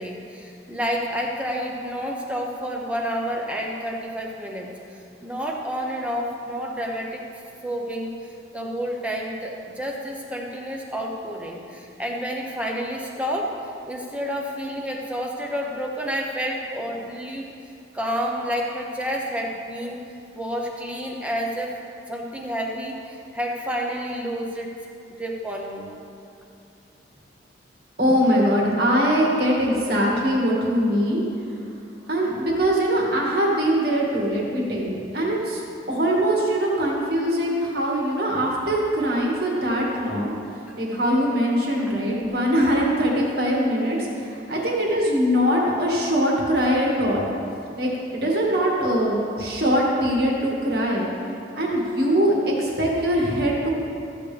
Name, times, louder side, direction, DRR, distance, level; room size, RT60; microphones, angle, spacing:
voice 1, 0.0-7.2 7.6-8.1 8.5-13.5 13.9-17.5 17.9-20.0 20.3-21.7 22.1-24.7 25.2-25.9, equal, 5° right, -1 dB, 0.9 m, -29 dB
voice 2, 28.0-31.2 32.1-35.6 35.9-40.3 40.8-47.3 47.8-51.1 51.5-53.7, equal, 55° right, -3 dB, 2.0 m, -22 dB
14.0 x 8.4 x 3.4 m, 2.7 s
head